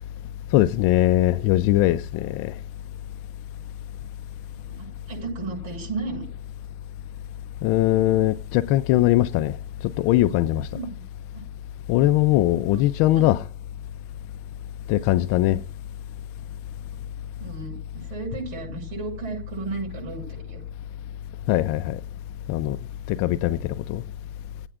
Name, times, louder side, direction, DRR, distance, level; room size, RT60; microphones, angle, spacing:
voice 1, 0.5-2.5 7.6-9.6 9.8-10.7 11.9-13.4 14.9-15.6 21.5-22.0 22.5-22.8 23.1-24.0, left 15 dB, 50° left, 0.5 m, -21 dB
voice 2, 4.5-6.2 10.6-11.0 12.7-12.8 13.1-13.3 17.1-20.6, right 4 dB, 65° right, 7.0 m, -34 dB
21.0 x 8.9 x 2.4 m
supercardioid pair, 135°, 29 cm